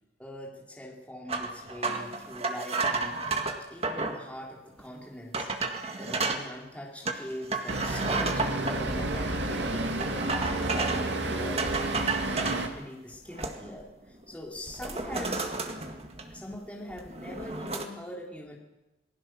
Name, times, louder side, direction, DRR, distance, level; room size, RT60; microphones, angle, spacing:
voice 1, 0.2-5.5 6.0-15.5 16.3-18.6, left 1 dB, 5° left, -2 dB, 3.4 m, -42 dB
sound 1, 1.3-4.2 4.8-4.9 5.3-6.4 7.0-8.8 10.0-11.1 11.6-12.7 13.1-13.8 14.1-14.3 14.7-16.5 16.9-17.8, right 3 dB, 35° right, 1.9 m, -32 dB
Traffic noise roadway noise, 7.7-12.7, right 2 dB, 75° right, 2.5 m, -31 dB
27.5 x 20.0 x 6.3 m, 0.98 s
head